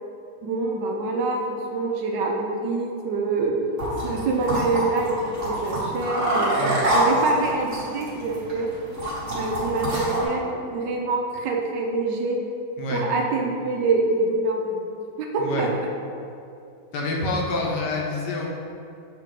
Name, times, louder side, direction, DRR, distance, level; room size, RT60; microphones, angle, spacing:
voice 1, 0.4-3.5 4.0-8.7 9.3-12.4 12.9-14.9 15.2-15.7, right 3 dB, 80° right, 1 dB, 1.4 m, -25 dB
sound 1, 3.8-10.2, right 1 dB, 45° right, 1.6 m, -26 dB
voice 2, 15.4-15.7 16.9-18.5, left 2 dB, 75° left, -1 dB, 1.4 m, -27 dB
6.9 x 3.7 x 3.6 m, 2.6 s
omnidirectional pair, 1.9 m